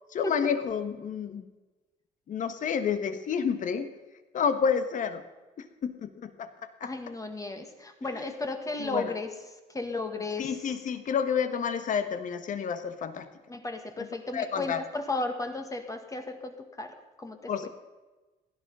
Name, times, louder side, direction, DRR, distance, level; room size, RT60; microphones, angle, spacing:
voice 1, 0.1-1.4 2.3-3.9 4.3-5.2 5.6-6.9 8.1-8.3 8.8-9.1 10.4-13.3 14.0-14.1 14.3-14.8 17.5-17.7, left 7 dB, 50° left, 10 dB, 1.4 m, -30 dB
voice 2, 6.8-9.3 9.7-10.5 13.5-17.4, left 2 dB, 20° left, 6 dB, 1.7 m, -34 dB
16.5 x 11.5 x 5.6 m, 1.2 s
cardioid pair, 110°, 17 cm